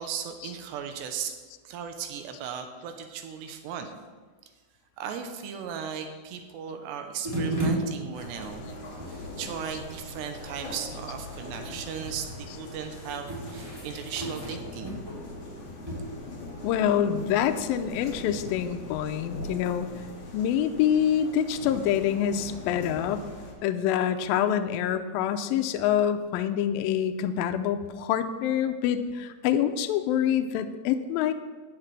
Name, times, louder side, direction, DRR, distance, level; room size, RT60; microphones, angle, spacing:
voice 1, 0.0-1.4 1.6-3.9 5.0-8.7 8.9-15.0, right 7 dB, 85° right, 6 dB, 2.9 m, -37 dB
sound 1, 7.2-18.6, right 2 dB, 5° right, 2.5 m, -37 dB
sound 2, 8.1-23.5, left 2 dB, 45° left, 2.4 m, -42 dB
voice 2, 16.6-19.9 20.3-23.3 23.6-31.3, left 9 dB, 90° left, 8 dB, 2.0 m, -26 dB
14.0 x 9.9 x 3.3 m, 1.4 s
omnidirectional pair, 4.9 m